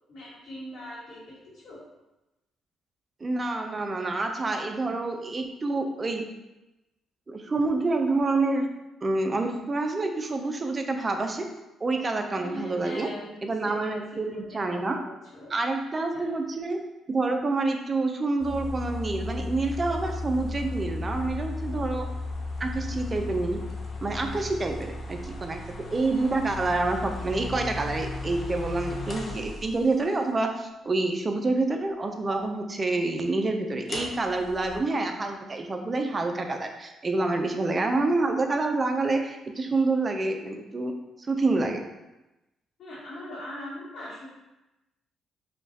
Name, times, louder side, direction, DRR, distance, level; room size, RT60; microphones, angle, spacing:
voice 1, 0.1-1.8 12.3-15.5 15.8-16.3 42.8-44.3, left 1 dB, 65° left, -8 dB, 1.2 m, -42 dB
voice 2, 3.2-6.2 7.3-8.7 9.0-11.5 11.8-13.1 13.4-15.0 15.5-22.1 22.6-23.6 24.0-41.0 41.3-41.8, right 2 dB, 30° right, 4 dB, 0.5 m, -27 dB
sound 1, 18.4-30.1 33.9-34.8, left 2 dB, 45° left, 0.7 m, -35 dB
5.1 x 2.3 x 2.7 m, 0.98 s
cardioid pair, 90°, 0 cm